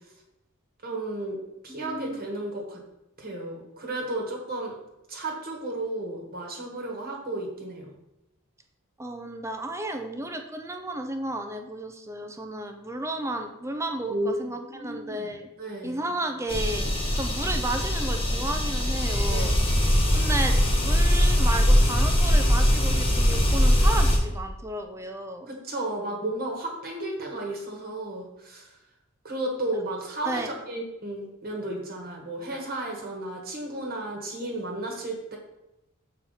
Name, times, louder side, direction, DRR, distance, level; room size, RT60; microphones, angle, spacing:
voice 1, 0.8-1.4 1.6-2.8 3.2-4.8 5.1-7.9 14.1-15.3 15.6-16.0 19.2-19.5 25.5-28.7 29.2-35.4, right 1 dB, 45° right, 0 dB, 1.5 m, -33 dB
voice 2, 1.7-2.2 9.0-15.5 15.8-19.5 20.1-25.5 30.2-30.5, right 1 dB, 15° right, 5 dB, 0.6 m, -33 dB
sound 1, 16.5-24.2, equal, 25° left, 1.4 m, -21 dB
6.7 x 4.4 x 5.6 m, 0.92 s
head